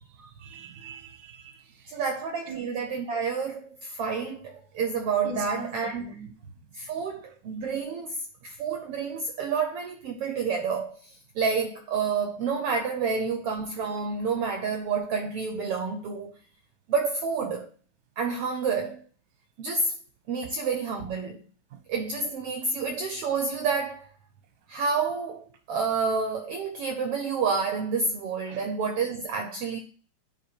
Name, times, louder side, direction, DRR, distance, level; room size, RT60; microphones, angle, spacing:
voice 1, 0.4-1.6 2.5-2.6 5.2-5.7 6.0-6.3 28.5-28.7, right 4 dB, 50° right, 1.1 m, -40 dB
voice 2, 1.9-6.1 6.7-16.3 16.9-17.7 18.2-19.0 19.6-20.0 20.3-21.4 21.9-24.1 24.7-29.8, right 5 dB, 70° right, 1.4 m, -29 dB
10.0 x 3.5 x 4.7 m
omnidirectional pair, 3.5 m